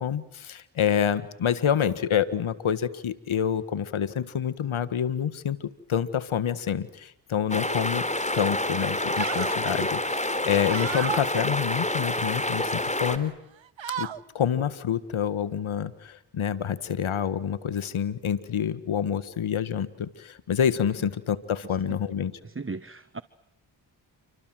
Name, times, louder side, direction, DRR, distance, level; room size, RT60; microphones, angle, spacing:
voice 1, 0.0-8.0 8.3-13.3 14.0-14.1 14.4-22.3, left 8 dB, 75° left, 14 dB, 1.7 m, -27 dB
sound 1, 7.5-13.2, left 1 dB, 15° left, 3.6 m, -28 dB
sound 2, 8.1-8.4 8.8-9.6 10.0-11.3 11.8-12.7 13.1-13.3 13.6-14.2, right 9 dB, 65° right, 1.3 m, -36 dB
voice 2, 22.4-23.2, right 4 dB, 25° right, 14 dB, 1.2 m, -36 dB
29.5 x 26.0 x 7.8 m, 0.75 s
cardioid pair, 45°, 49 cm